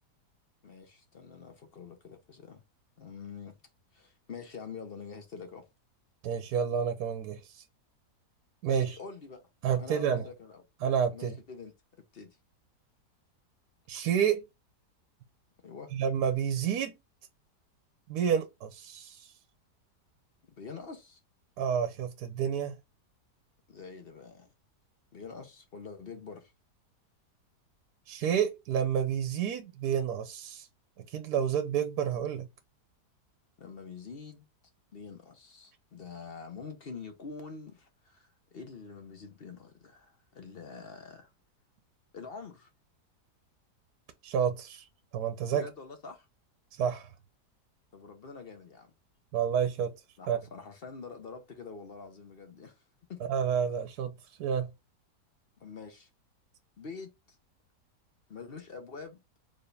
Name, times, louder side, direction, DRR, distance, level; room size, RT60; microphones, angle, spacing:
voice 1, 0.6-2.6 3.0-3.6 3.9-5.7 8.7-9.4 9.8-10.6 11.1-11.7 12.1-12.4 15.6-15.9 20.4-21.2 23.7-24.5 25.1-26.5 33.6-34.5 34.9-41.3 42.1-42.7 45.5-46.3 47.9-48.9 50.2-52.8 53.1-53.2 55.6-56.1 56.8-57.4 58.3-59.2, left 5 dB, 45° left, 0.9 m, -45 dB
voice 2, 6.2-7.4 8.6-8.9 9.6-10.3 10.8-11.3 13.9-14.4 15.9-16.9 18.1-19.3 21.6-22.7 28.1-30.7 31.0-32.5 44.2-44.9 45.1-45.6 46.7-47.1 49.3-49.9 50.3-50.4 53.3-54.1 54.4-54.7, right 8 dB, 70° right, 1.1 m, -29 dB
4.5 x 3.4 x 3.3 m
omnidirectional pair, 1.8 m